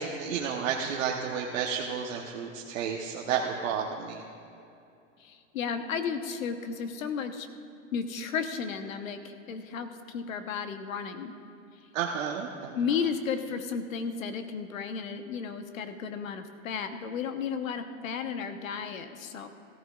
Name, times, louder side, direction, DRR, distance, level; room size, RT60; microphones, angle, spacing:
voice 1, 0.0-4.2 11.9-12.7, right 7 dB, 80° right, -1 dB, 1.2 m, -31 dB
voice 2, 5.2-7.5 7.9-11.3 12.7-19.5, left 6 dB, 90° left, 8 dB, 1.1 m, -33 dB
17.5 x 14.0 x 2.4 m, 2.6 s
supercardioid pair, 135°, 39 cm